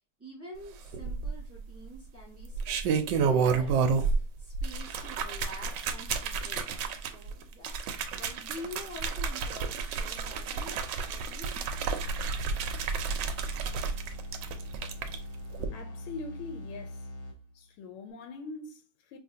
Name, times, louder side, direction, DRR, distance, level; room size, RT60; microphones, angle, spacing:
voice 1, 0.2-7.8 8.2-11.5, left 1 dB, 10° right, 1.2 m, -47 dB
sound 1, 0.9-1.6 2.4-4.2 4.5-15.2 15.5-15.7, right 5 dB, 75° right, 1.1 m, -31 dB
sound 2, 11.6-17.7, left 1 dB, 50° left, 1.0 m, -42 dB
voice 2, 15.7-17.1 17.5-19.2, left 3 dB, 85° left, 1.5 m, -43 dB
5.0 x 2.7 x 2.7 m
omnidirectional pair, 2.3 m